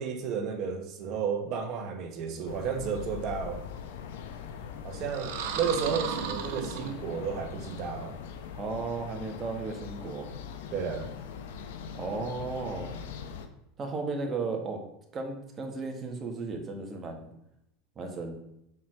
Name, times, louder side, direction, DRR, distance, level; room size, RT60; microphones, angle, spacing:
voice 1, 0.0-3.6 4.8-8.2 10.7-11.1, right 6 dB, 45° right, 4 dB, 1.3 m, -32 dB
sound 1, 2.5-13.5, left 7 dB, 85° left, 1.0 m, -41 dB
sound 2, 5.1-7.4, right 8 dB, 80° right, 1.2 m, -35 dB
voice 2, 8.6-10.3 11.9-13.0 13.8-14.8 15.1-17.3 18.0-18.4, right 3 dB, 25° right, 2 dB, 1.7 m, -35 dB
7.2 x 4.9 x 6.0 m, 0.82 s
supercardioid pair, 140°, 0 cm